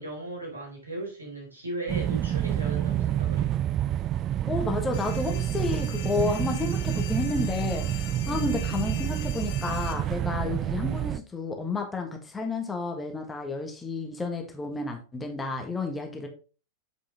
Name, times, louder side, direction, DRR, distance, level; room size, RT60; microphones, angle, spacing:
voice 1, 0.0-3.5 8.2-8.5, right 1 dB, 80° right, 3.8 m, -37 dB
sound 1, 1.9-11.2, right 11 dB, 30° right, 0.4 m, -28 dB
voice 2, 4.5-16.3, left 3 dB, 15° left, 1.4 m, -31 dB
sound 2, 4.9-9.9, left 8 dB, 55° left, 1.3 m, -42 dB
7.8 x 5.4 x 3.7 m
figure-of-eight pair, 90°, 0 cm